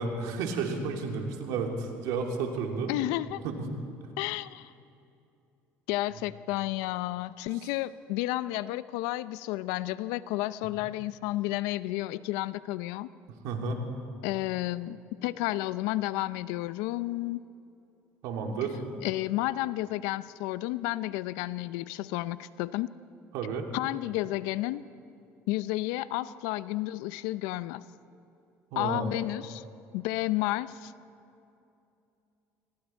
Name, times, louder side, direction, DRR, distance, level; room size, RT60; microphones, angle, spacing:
voice 1, 0.0-2.9 3.4-3.6 13.4-13.8 18.2-18.8 23.3-23.7 28.7-29.1, right 4 dB, 75° right, 2 dB, 2.9 m, -32 dB
voice 2, 2.9-3.4 4.2-4.7 5.9-13.1 14.2-17.4 19.0-22.9 23.7-24.8 25.5-27.8 28.8-29.6 29.9-30.9, left 17 dB, 80° left, 16 dB, 0.6 m, -31 dB
27.5 x 21.5 x 4.5 m, 2.7 s
supercardioid pair, 95°, 6 cm